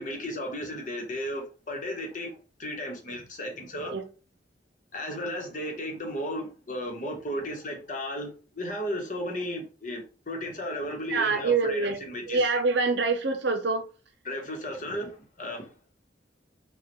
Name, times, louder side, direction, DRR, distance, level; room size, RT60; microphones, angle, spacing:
voice 1, 0.0-3.9 4.9-12.4 14.2-15.7, equal, 40° left, 1.0 m, -34 dB
voice 2, 11.1-12.0 12.3-13.8, right 4 dB, 65° right, 0.7 m, -25 dB
5.2 x 2.3 x 3.0 m
head